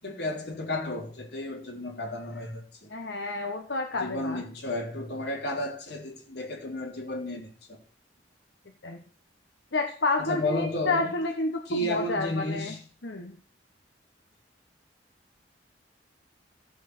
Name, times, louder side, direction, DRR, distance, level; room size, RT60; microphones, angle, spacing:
voice 1, 0.0-2.9 3.9-7.8 10.2-11.1 11.7-12.8, left 1 dB, 65° left, 3.5 m, -33 dB
voice 2, 2.9-4.4 8.8-9.0 9.7-12.7 13.0-13.4, left 3 dB, 90° left, 1.3 m, -30 dB
14.5 x 7.0 x 6.2 m
head